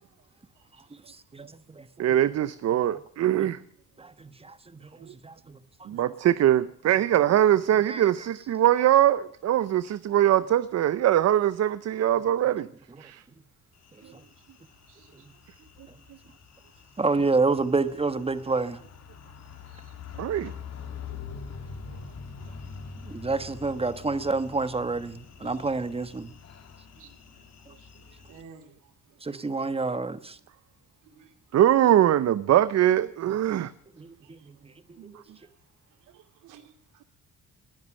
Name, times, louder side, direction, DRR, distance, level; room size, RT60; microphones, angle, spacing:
voice 1, 1.1-1.9 4.0-5.6 7.9-8.0 14.1-14.2 17.0-18.8 23.0-26.3 29.2-30.4 34.0-34.5 35.1-35.2, right 3 dB, 20° right, 1.2 m, -29 dB
voice 2, 2.0-3.6 5.9-12.7 13.0-13.2 20.2-20.5 31.5-33.7, right 12 dB, 60° right, 0.7 m, -22 dB
sound 1, 13.8-28.4, left 6 dB, 60° left, 2.6 m, -45 dB
voice 3, 14.9-15.3 15.6-15.7 19.7-19.9 21.9-22.0 22.4-22.5 27.0-27.2 27.8-28.9 29.3-29.4 31.0-31.3 34.2-34.5 35.4-35.5 36.1-36.2 36.5-36.7, right 6 dB, 90° right, 2.4 m, -54 dB
20.0 x 10.5 x 6.3 m
cardioid pair, 90°, 30 cm